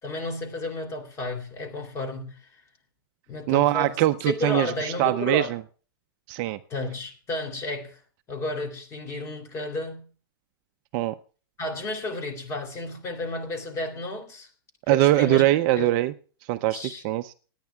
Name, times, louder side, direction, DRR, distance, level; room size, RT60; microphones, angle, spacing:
voice 1, 0.0-2.5 3.3-4.0 4.3-5.5 6.7-8.0 8.3-10.0 11.6-14.5 14.9-15.4 15.8-15.9 16.7-17.0, left 2 dB, 25° left, 3.0 m, -32 dB
voice 2, 3.5-5.6 6.3-6.6 10.9-11.1 14.9-16.1 16.5-17.3, right 15 dB, 35° right, 0.5 m, -22 dB
28.5 x 9.6 x 2.3 m
hypercardioid pair, 145°, 13 cm